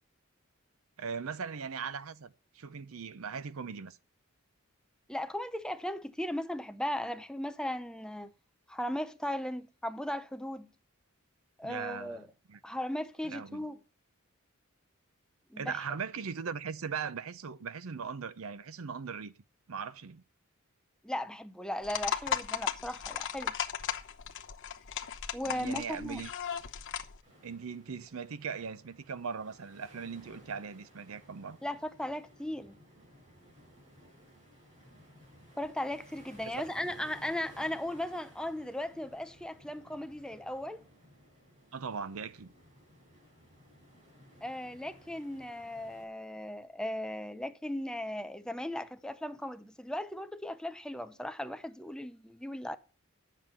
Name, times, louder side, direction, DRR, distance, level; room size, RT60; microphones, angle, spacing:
voice 1, 1.0-4.0 11.6-12.6 13.2-13.7 15.6-19.3 19.7-20.2 25.5-26.3 27.4-31.6 36.4-36.6 41.7-42.5, right 6 dB, 70° right, 0.6 m, -39 dB
voice 2, 5.1-8.3 8.7-10.7 11.6-12.3 12.6-13.8 15.5-15.8 21.0-23.5 25.3-26.2 31.6-32.8 35.6-40.8 44.4-52.8, left 1 dB, 5° left, 0.5 m, -37 dB
sound 1, 21.8-27.2, left 8 dB, 60° left, 0.8 m, -36 dB
sound 2, 27.2-46.1, equal, 35° right, 6.8 m, -57 dB
10.5 x 7.5 x 5.5 m
head